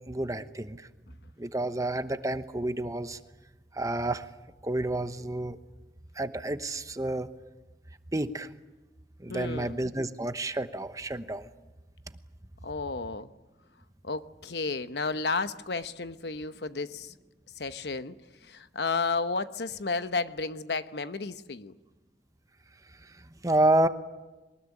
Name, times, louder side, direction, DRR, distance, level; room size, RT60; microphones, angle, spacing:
voice 1, 0.1-0.8 1.4-3.2 3.7-4.2 4.6-5.6 6.2-7.3 8.1-8.5 9.2-11.5 23.4-23.9, right 1 dB, 20° right, 10 dB, 1.0 m, -29 dB
voice 2, 9.3-9.8 12.6-13.3 14.0-17.1 17.6-18.2 18.4-21.8, left 4 dB, 70° left, 11 dB, 1.0 m, -32 dB
23.0 x 20.5 x 10.0 m, 1.1 s
head